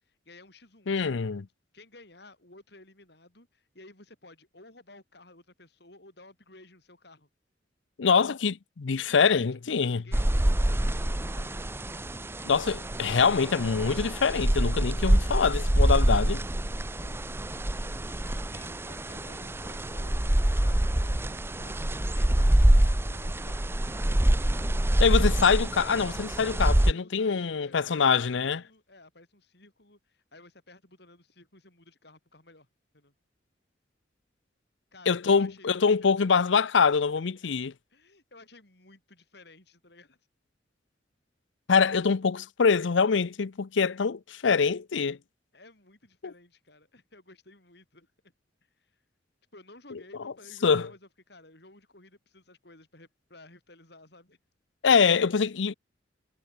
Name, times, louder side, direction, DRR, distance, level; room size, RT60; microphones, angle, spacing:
voice 1, 0.0-1.2 1.7-7.3 9.1-11.6 15.0-15.7 17.6-23.6 26.7-32.7 32.9-33.1 34.9-36.5 36.8-37.5 37.9-40.2 45.5-48.1 48.8-49.0 49.5-54.4, left 2 dB, 60° left, 6.7 m, -55 dB
voice 2, 0.9-1.4 8.0-10.0 12.4-16.4 25.0-28.6 35.1-37.7 41.7-45.2 50.2-50.3 50.6-50.9 54.8-55.7, left 5 dB, 75° left, 0.6 m, -24 dB
sound 1, 10.1-26.9, right 1 dB, 10° right, 0.6 m, -25 dB
head